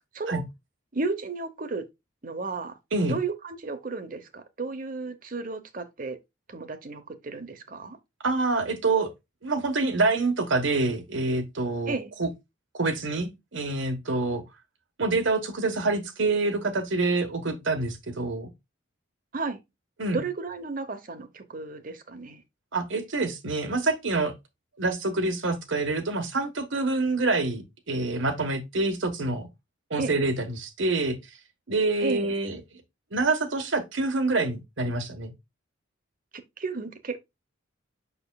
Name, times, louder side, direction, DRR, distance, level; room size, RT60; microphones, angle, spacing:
voice 1, 0.9-1.9 2.2-2.8 3.1-6.2 6.5-8.0 11.9-12.1 19.3-19.6 20.1-22.4 30.0-30.1 32.0-32.3 36.6-37.2, right 3 dB, 40° right, 0.9 m, -33 dB
voice 2, 8.2-9.1 9.4-12.3 12.7-14.4 15.0-18.5 20.0-20.2 22.7-24.3 24.8-29.5 29.9-31.2 31.7-32.8 33.1-35.3, right 3 dB, 70° right, 1.3 m, -26 dB
6.9 x 6.3 x 2.3 m
head